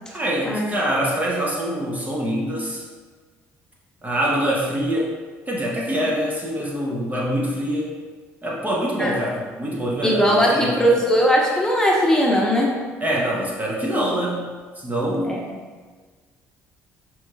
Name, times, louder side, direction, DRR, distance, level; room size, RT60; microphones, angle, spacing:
voice 1, 0.1-2.8 4.0-5.2 5.5-8.0 8.4-10.9 13.0-14.5 14.8-15.5, equal, 25° right, -3 dB, 0.9 m, -24 dB
voice 2, 10.0-12.8 15.2-15.4, equal, 10° left, -3 dB, 1.0 m, -19 dB
5.9 x 3.0 x 2.4 m, 1.4 s
hypercardioid pair, 60°, 7 cm